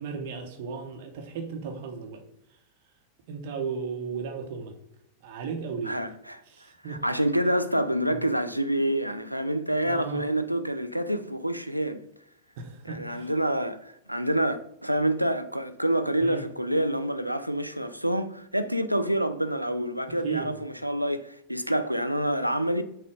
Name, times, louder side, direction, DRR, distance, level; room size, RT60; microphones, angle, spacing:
voice 1, 0.0-2.2 3.3-4.7 5.2-6.0 6.5-7.2 8.1-8.2 9.9-10.2 12.6-13.3 16.2-16.4 20.2-20.6, right 5 dB, 50° right, 0.9 m, -35 dB
voice 2, 5.9-6.4 6.9-12.0 12.9-22.8, right 1 dB, 90° right, 0.3 m, -27 dB
6.0 x 2.2 x 3.5 m
figure-of-eight pair, 90°, 0 cm